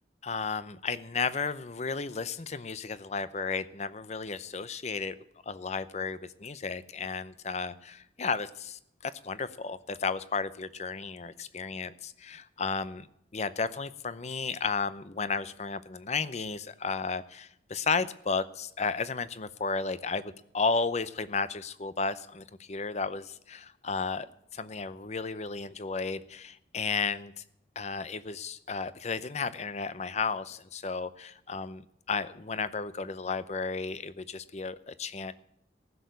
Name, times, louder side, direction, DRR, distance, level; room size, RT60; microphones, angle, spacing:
voice 1, 0.2-5.2 5.5-13.1 13.3-24.3 24.5-27.4 27.8-31.8 32.1-35.3, left 4 dB, 40° left, 15 dB, 0.6 m, -33 dB
15.5 x 6.6 x 8.1 m, 0.75 s
head